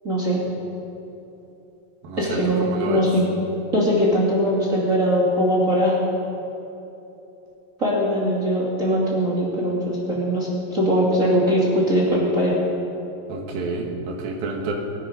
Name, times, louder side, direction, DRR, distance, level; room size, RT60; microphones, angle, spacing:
voice 1, 0.0-0.4 2.2-3.2 3.7-5.9 7.8-12.6, equal, 25° right, -6 dB, 2.3 m, -21 dB
voice 2, 2.0-3.0 13.3-14.7, right 3 dB, 75° right, 1 dB, 3.5 m, -29 dB
23.0 x 9.9 x 5.1 m, 2.9 s
omnidirectional pair, 4.3 m